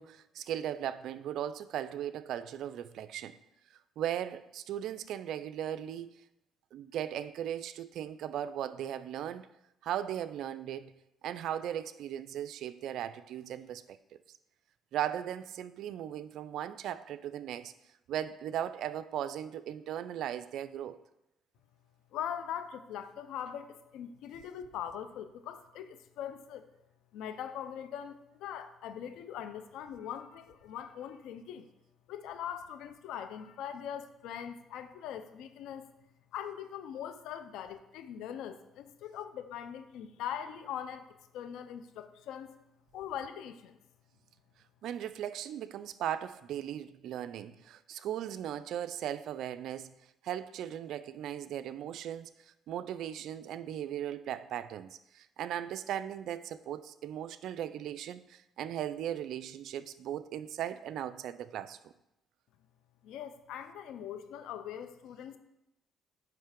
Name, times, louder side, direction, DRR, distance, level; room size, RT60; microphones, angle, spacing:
voice 1, 0.0-3.4 4.0-6.1 6.7-9.5 9.8-10.9 11.2-14.0 14.9-17.7 18.1-21.0 44.8-49.9 50.2-52.3 52.7-61.9, right 10 dB, 70° right, 0.4 m, -37 dB
voice 2, 22.1-26.7 27.1-31.7 32.1-35.9 36.3-42.5 42.9-43.8 63.0-65.4, left 9 dB, 80° left, 0.5 m, -41 dB
9.1 x 3.2 x 5.1 m
cardioid pair, 85°, 0 cm